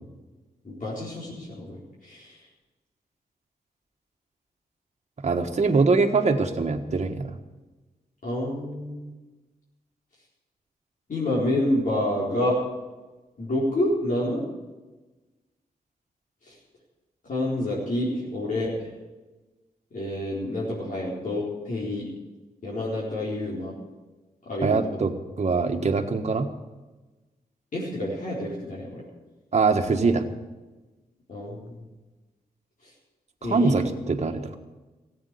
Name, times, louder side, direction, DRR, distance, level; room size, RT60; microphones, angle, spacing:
voice 1, 0.6-2.4 5.7-5.8 8.2-9.1 11.1-12.6 13.4-14.4 16.4-16.5 17.2-18.9 19.9-22.1 22.6-23.7 24.5-24.8 27.7-29.0 31.3-31.8 32.8-32.9 33.4-33.7, left 1 dB, 60° left, -7 dB, 4.4 m, -28 dB
voice 2, 5.2-7.3 24.6-26.5 29.5-30.2 33.4-34.5, right 4 dB, 45° right, 4 dB, 1.5 m, -23 dB
15.5 x 9.0 x 8.4 m, 1.2 s
cardioid pair, 70°, 15 cm